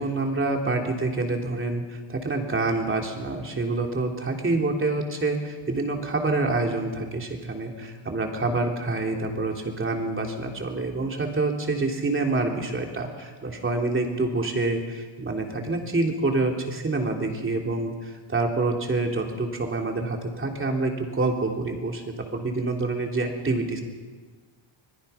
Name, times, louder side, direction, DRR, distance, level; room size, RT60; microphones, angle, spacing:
voice 1, 0.0-22.0 22.3-23.8, right 2 dB, 25° right, 2 dB, 3.4 m, -27 dB
25.5 x 22.0 x 5.8 m, 1.4 s
cardioid pair, 140°, 49 cm